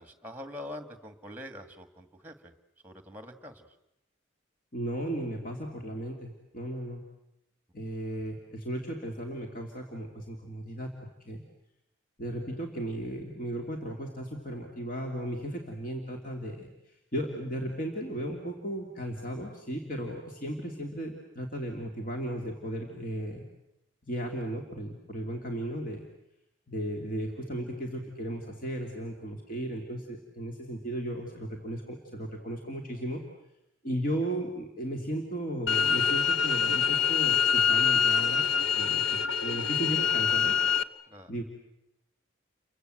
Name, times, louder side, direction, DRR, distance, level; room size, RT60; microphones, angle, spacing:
voice 1, 0.0-2.5 2.8-3.7 41.1-41.3, left 1 dB, 10° right, 9 dB, 1.9 m, -44 dB
voice 2, 4.7-7.0 7.7-11.4 12.2-16.7 17.1-23.5 24.1-26.1 26.7-33.2 33.8-38.4 38.8-40.6 41.3-41.4, right 1 dB, 45° left, 1 dB, 2.9 m, -35 dB
sound 1, 35.7-40.8, left 7 dB, 75° left, 1.1 m, -25 dB
30.0 x 24.0 x 7.9 m, 0.84 s
head